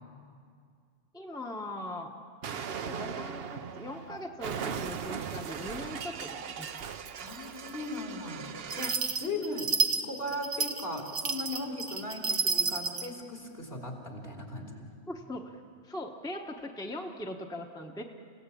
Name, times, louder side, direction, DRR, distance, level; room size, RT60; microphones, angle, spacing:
voice 1, 1.1-2.1 2.5-6.7 15.1-18.0, left 1 dB, 5° left, 2 dB, 1.1 m, -40 dB
Explosion, 2.4-9.1, right 7 dB, 60° right, 1.0 m, -39 dB
voice 2, 7.2-14.8, left 2 dB, 60° left, 0 dB, 3.5 m, -38 dB
sound 1, 8.7-13.1, right 4 dB, 85° right, 1.5 m, -30 dB
29.0 x 17.0 x 8.5 m, 2.2 s
omnidirectional pair, 1.2 m